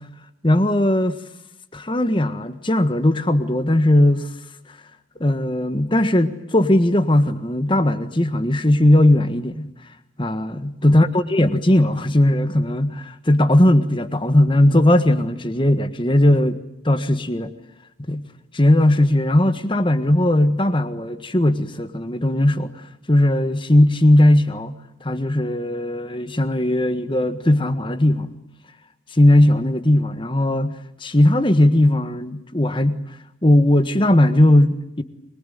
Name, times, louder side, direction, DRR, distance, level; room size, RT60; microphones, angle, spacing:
voice 1, 0.4-1.2 1.7-4.3 5.2-9.7 10.2-16.6 16.8-17.5 18.1-18.2 18.5-22.7 23.1-28.3 29.1-33.0 33.4-35.0, left 1 dB, 25° left, 1.6 m, -18 dB
24.5 x 22.5 x 9.4 m
head